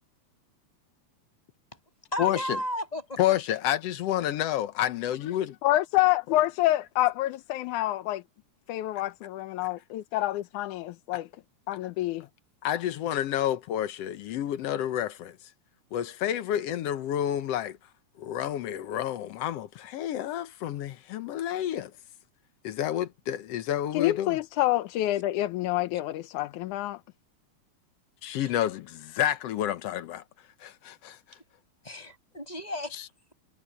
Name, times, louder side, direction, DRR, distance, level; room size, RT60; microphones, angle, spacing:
voice 1, 2.1-3.4 28.4-28.5 31.3-31.4 31.8-33.3, left 1 dB, 10° left, 7.6 m, -35 dB
voice 2, 3.2-5.6 12.6-15.4 15.9-17.8 18.2-21.9 22.6-24.4 28.2-30.2 30.6-31.2, left 11 dB, 65° left, 1.8 m, -29 dB
voice 3, 5.6-8.2 8.7-11.3 11.7-12.3 23.9-27.0, left 16 dB, 90° left, 2.3 m, -27 dB
omnidirectional pair, 3.4 m